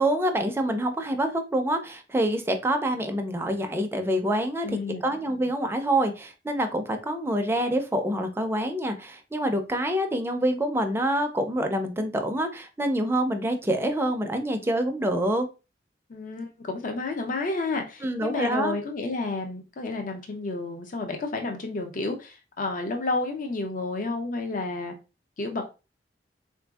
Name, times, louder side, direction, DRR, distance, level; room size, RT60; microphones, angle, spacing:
voice 1, 0.0-15.5 18.0-18.8, right 1 dB, 15° right, 5 dB, 0.4 m, -26 dB
voice 2, 4.6-5.0 16.1-24.9 25.4-25.7, left 3 dB, 50° left, 4 dB, 0.5 m, -31 dB
3.7 x 2.6 x 2.2 m, 0.29 s
head